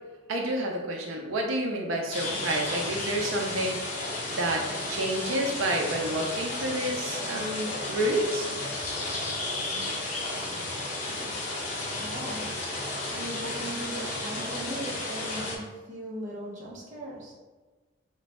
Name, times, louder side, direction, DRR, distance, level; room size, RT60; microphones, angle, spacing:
voice 1, 0.3-3.8 4.3-8.5, right 1 dB, 90° right, 1 dB, 0.5 m, -29 dB
sound 1, 2.1-15.6, left 2 dB, 35° left, 0.8 m, -33 dB
voice 2, 12.0-12.7 13.1-17.3, right 1 dB, 40° right, -5 dB, 0.8 m, -38 dB
3.1 x 2.2 x 4.0 m, 1.3 s
head